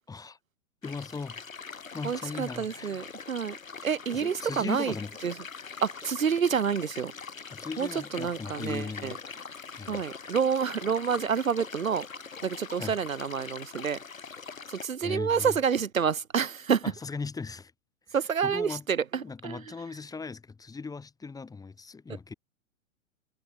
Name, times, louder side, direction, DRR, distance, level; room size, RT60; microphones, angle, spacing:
voice 1, 0.1-0.4 0.8-3.0 4.1-5.3 7.5-9.2 9.8-10.0 12.8-13.0 15.0-15.6 16.8-17.7 18.1-18.2 18.4-18.8 19.2-22.3, left 4 dB, 10° left, 3.7 m, -38 dB
sound 1, 0.8-14.8, left 5 dB, 75° left, 3.9 m, -43 dB
voice 2, 2.0-3.6 3.8-4.9 5.2-5.3 5.8-7.1 7.8-9.2 9.9-12.1 12.4-14.0 14.7-16.8 18.1-19.6, right 7 dB, 75° right, 1.2 m, -28 dB
figure-of-eight pair, 110°, 41 cm